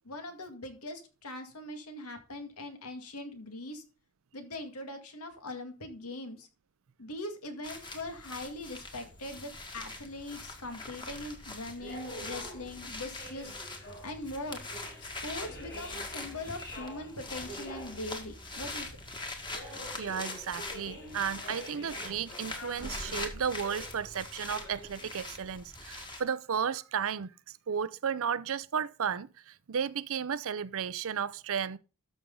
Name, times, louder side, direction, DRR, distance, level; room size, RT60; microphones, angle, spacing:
voice 1, 0.1-3.8 4.3-6.5 7.0-13.6 14.0-14.6 15.0-18.9, left 2 dB, 85° left, 2.1 m, -41 dB
sound 1, 7.6-26.2, left 2 dB, 20° left, 1.8 m, -43 dB
sound 2, 9.0-25.6, equal, 55° left, 5.5 m, -48 dB
voice 2, 19.6-27.3 27.7-31.8, right 7 dB, 65° right, 0.6 m, -34 dB
12.5 x 6.3 x 3.8 m
head